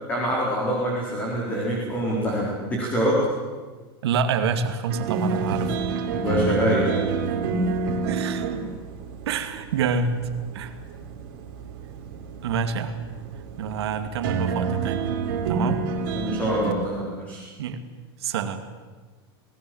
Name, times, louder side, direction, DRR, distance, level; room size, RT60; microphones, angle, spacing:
voice 1, 0.1-3.2 6.1-7.2 16.1-17.4, equal, 10° left, -4 dB, 4.4 m, -25 dB
voice 2, 4.0-5.8 8.1-8.5 9.3-10.2 10.5-10.8 12.4-13.0 13.6-15.2 15.5-15.8 17.6-17.8 18.2-18.6, right 5 dB, 80° right, 8 dB, 2.4 m, -27 dB
sound 1, 4.9-16.7, right 5 dB, 50° right, 3.5 m, -29 dB
27.0 x 19.0 x 8.0 m, 1.4 s
supercardioid pair, 180°, 13 cm